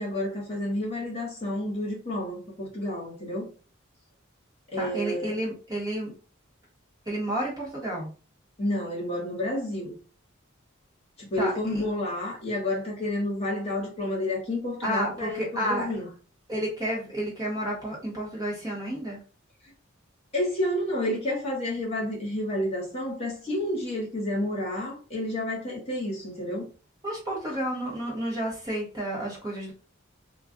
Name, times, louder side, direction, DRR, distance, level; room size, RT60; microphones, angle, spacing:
voice 1, 0.0-3.5 4.7-5.4 8.6-9.9 11.2-16.1 20.3-26.7, left 1 dB, 30° left, 1.1 m, -30 dB
voice 2, 4.7-6.1 7.1-8.1 11.4-11.8 14.8-15.9 16.5-19.2 27.0-29.7, right 1 dB, 20° right, 1.0 m, -31 dB
2.3 x 2.3 x 3.6 m
head